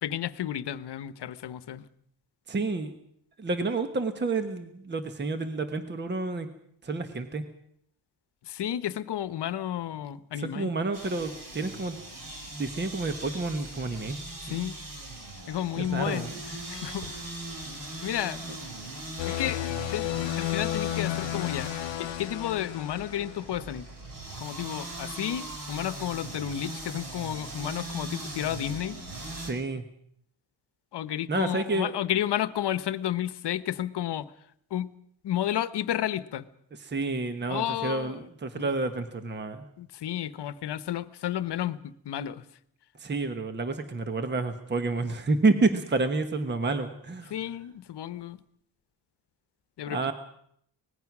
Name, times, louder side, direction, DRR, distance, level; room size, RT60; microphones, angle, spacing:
voice 1, 0.0-1.9 8.5-10.7 14.5-14.7 15.5-16.3 16.7-17.3 18.0-18.4 19.3-19.6 19.9-20.1 20.4-21.7 22.0-23.9 24.4-29.0 30.9-34.3 34.7-34.9 35.2-36.4 37.5-38.2 38.5-38.7 39.8-42.4 47.3-48.4 49.8-50.0, left 11 dB, 65° left, 15 dB, 1.1 m, -32 dB
voice 2, 2.5-2.9 3.4-6.5 6.8-7.4 10.4-12.0 12.5-14.2 14.5-14.6 15.8-16.6 29.4-29.8 31.3-31.9 36.8-39.7 43.0-47.3 49.8-50.1, right 3 dB, 25° right, 9 dB, 1.2 m, -29 dB
sound 1, 10.9-29.5, right 2 dB, 45° right, 4.4 m, -40 dB
sound 2, 19.2-23.6, left 15 dB, 80° left, 0.7 m, -32 dB
25.0 x 19.5 x 6.1 m, 0.69 s
wide cardioid pair, 165°, 45 cm